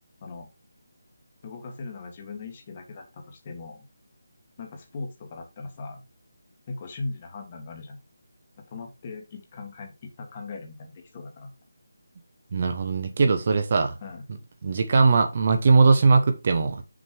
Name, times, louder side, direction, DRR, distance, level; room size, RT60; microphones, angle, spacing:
voice 1, 1.4-3.9 4.6-6.0 6.7-8.0 8.6-11.5 14.0-14.2, left 3 dB, 25° left, 1.7 m, -39 dB
voice 2, 12.5-14.0 14.6-16.8, right 4 dB, 35° right, 1.1 m, -20 dB
6.4 x 5.3 x 4.7 m
figure-of-eight pair, 170°, 0 cm